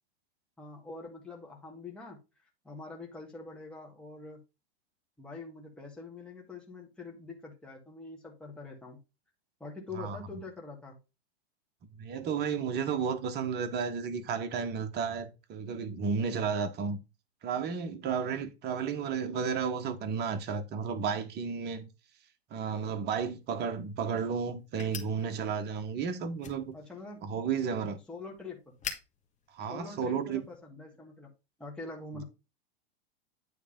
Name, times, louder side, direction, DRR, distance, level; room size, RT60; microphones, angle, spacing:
voice 1, 0.6-2.2 2.6-4.4 5.2-9.0 9.6-11.0 26.7-27.2 28.1-28.7 29.7-31.3 31.6-32.2, left 3 dB, 5° left, 1.8 m, -44 dB
voice 2, 12.0-17.0 17.4-21.9 22.5-26.7 27.2-28.0 29.5-30.4, right 6 dB, 30° right, 1.3 m, -32 dB
sound 1, 23.4-30.6, left 7 dB, 20° left, 1.5 m, -48 dB
9.5 x 3.5 x 5.1 m
hypercardioid pair, 120°, 32 cm